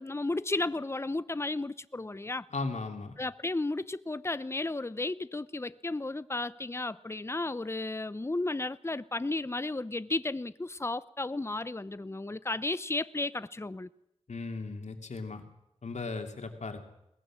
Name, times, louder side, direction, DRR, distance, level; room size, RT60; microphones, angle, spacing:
voice 1, 0.0-2.5 3.2-13.9, left 2 dB, 20° left, 0.7 m, -33 dB
voice 2, 2.5-3.1 14.3-15.4 15.8-16.9, left 3 dB, 80° left, 2.6 m, -37 dB
21.5 x 18.5 x 7.4 m
wide cardioid pair, 65°, 12 cm